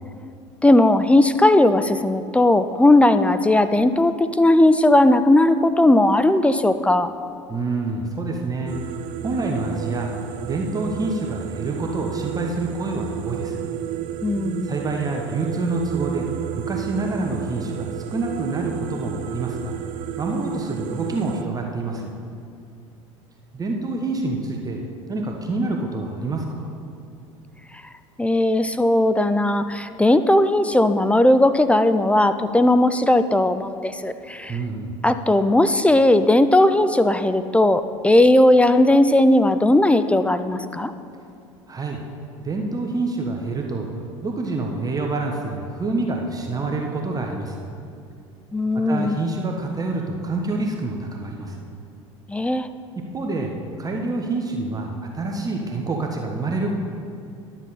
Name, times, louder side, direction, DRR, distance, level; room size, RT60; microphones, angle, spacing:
voice 1, 0.6-7.1 14.2-14.8 28.2-34.6 35.0-40.9 48.5-49.2 52.3-52.7, left 1 dB, 10° left, 10 dB, 0.4 m, -17 dB
voice 2, 7.5-8.7 9.2-10.1 10.4-13.5 14.6-16.3 16.5-19.7 20.2-22.1 23.5-24.8 25.1-26.7 34.5-34.9 41.7-42.0 42.4-43.9 44.2-47.7 48.9-51.5 53.1-53.5 53.8-56.7, right 3 dB, 20° right, 1 dB, 1.1 m, -27 dB
sound 1, 8.7-21.4, right 10 dB, 50° right, 0.5 m, -32 dB
11.5 x 7.4 x 4.2 m, 2.5 s
hypercardioid pair, 75°, 16 cm